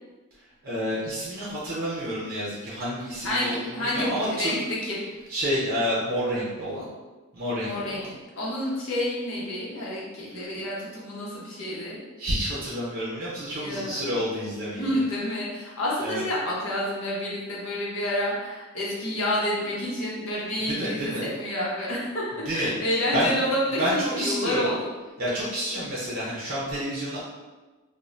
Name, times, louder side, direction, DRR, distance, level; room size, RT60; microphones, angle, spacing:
voice 1, 0.6-4.5 5.3-6.8 7.3-8.0 10.3-10.4 12.2-15.0 16.0-16.2 20.6-21.3 22.3-23.4 23.7-24.7 25.2-27.2, equal, 45° right, -7 dB, 0.6 m, -29 dB
voice 2, 3.2-4.6 4.8-5.0 7.6-8.0 8.4-12.0 13.6-14.1 14.7-23.8 24.1-24.8, left 1 dB, 65° left, -5 dB, 0.8 m, -29 dB
2.5 x 2.1 x 3.1 m, 1.2 s
head